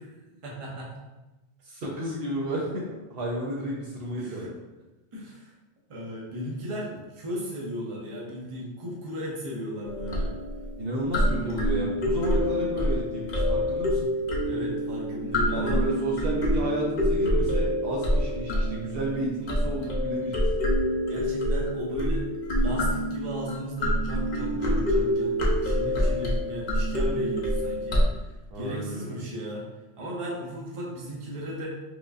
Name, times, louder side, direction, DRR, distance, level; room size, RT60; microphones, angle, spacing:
voice 1, 0.3-0.9 4.2-4.6 5.1-5.5 5.9-10.3 14.4-15.8 20.7-22.3 22.6-28.3 28.5-29.7 29.9-31.7, equal, 35° right, -4 dB, 0.7 m, -36 dB
voice 2, 1.6-4.5 10.8-14.1 15.5-20.4 28.5-29.2, right 1 dB, 60° right, -3 dB, 0.8 m, -32 dB
sound 1, 9.8-28.0, equal, 45° left, 0.7 m, -26 dB
4.6 x 2.6 x 2.4 m, 1.1 s
omnidirectional pair, 1.2 m